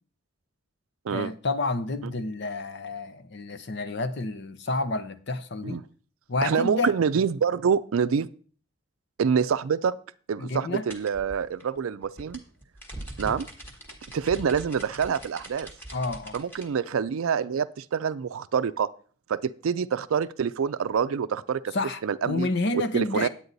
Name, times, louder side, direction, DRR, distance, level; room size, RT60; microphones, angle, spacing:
voice 1, 1.1-5.8 6.3-6.9 10.4-10.9 15.9-16.4 21.7-23.3, left 2 dB, 55° left, 0.7 m, -29 dB
voice 2, 6.4-8.3 9.2-10.0 10.3-12.4 13.2-13.5 14.1-15.7 16.3-18.9 19.3-21.7 22.0-22.5 22.9-23.3, right 6 dB, 85° right, 0.4 m, -26 dB
sound 1, 10.9-16.7, right 1 dB, 10° left, 1.3 m, -42 dB
9.6 x 8.6 x 4.0 m
head